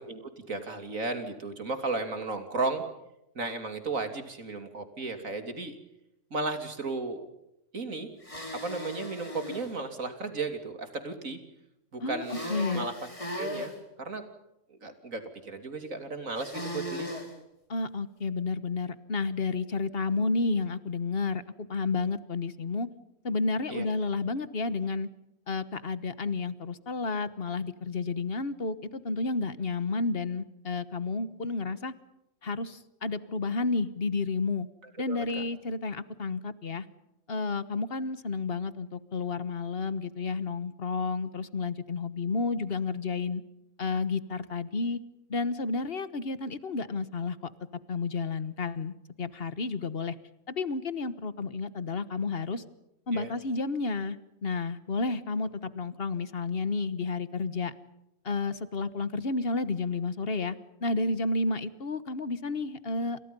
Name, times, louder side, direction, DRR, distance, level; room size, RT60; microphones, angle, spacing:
voice 1, 0.0-2.8 3.4-5.8 6.3-7.2 7.7-8.1 8.5-11.4 11.9-12.9 13.3-13.7 14.0-14.2 14.7-17.1 23.7-23.9 35.1-35.4 53.1-53.3, right 3 dB, 80° right, 7 dB, 3.5 m, -34 dB
sound 1, 8.2-9.7 12.2-13.7 16.4-17.3, left 1 dB, 25° left, 5.0 m, -37 dB
voice 2, 12.0-12.9 17.7-22.9 23.2-25.1 25.5-31.9 32.4-34.7 35.0-36.8 37.3-43.4 43.8-45.0 45.3-47.5 47.9-50.2 50.5-52.6 53.1-57.7 58.2-60.6 60.8-63.2, left 3 dB, 45° left, 14 dB, 1.5 m, -31 dB
28.5 x 28.0 x 5.5 m, 0.85 s
omnidirectional pair, 1.4 m